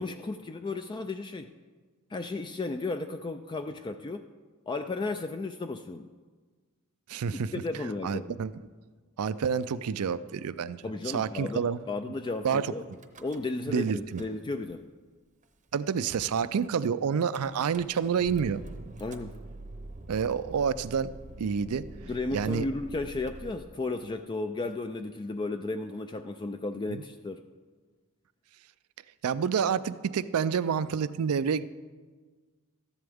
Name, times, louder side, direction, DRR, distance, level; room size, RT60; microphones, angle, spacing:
voice 1, 0.0-1.5 2.1-4.3 4.7-6.1 7.3-8.4 10.8-12.9 13.2-14.8 19.0-19.4 22.0-27.4, left 3 dB, 20° left, 7 dB, 0.3 m, -34 dB
voice 2, 7.1-7.5 8.0-8.5 9.2-11.8 12.4-12.7 13.7-14.2 15.7-18.6 20.1-21.1 21.4-21.8 22.3-22.7 26.9-27.0 29.2-31.6, right 6 dB, 75° right, 15 dB, 0.4 m, -28 dB
Car / Engine starting / Idling, 12.9-13.7 14.0-14.8 15.4-15.5 15.7-15.8 16.1-16.4 17.3-23.5, right 2 dB, 35° right, 0.7 m, -45 dB
13.5 x 11.0 x 3.5 m, 1.4 s
head